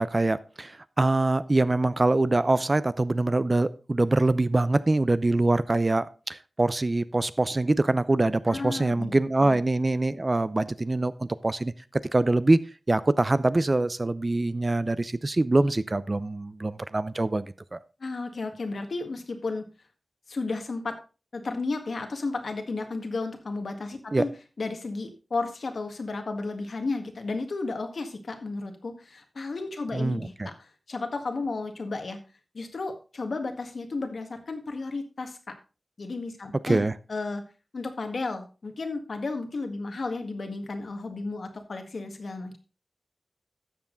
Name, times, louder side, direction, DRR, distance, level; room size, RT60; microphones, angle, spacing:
voice 1, 0.0-11.7 12.1-12.6 12.9-17.5 17.7-17.8 24.1-24.2 29.9-30.5 36.6-36.9, right 2 dB, 35° right, 0.6 m, -24 dB
voice 2, 8.5-9.1 9.4-9.6 18.0-19.6 20.3-20.9 21.3-24.3 24.6-32.2 32.5-35.4 36.0-37.4 37.7-42.6, left 3 dB, 75° left, 1.7 m, -33 dB
12.5 x 7.3 x 3.9 m
wide cardioid pair, 80°, 0 cm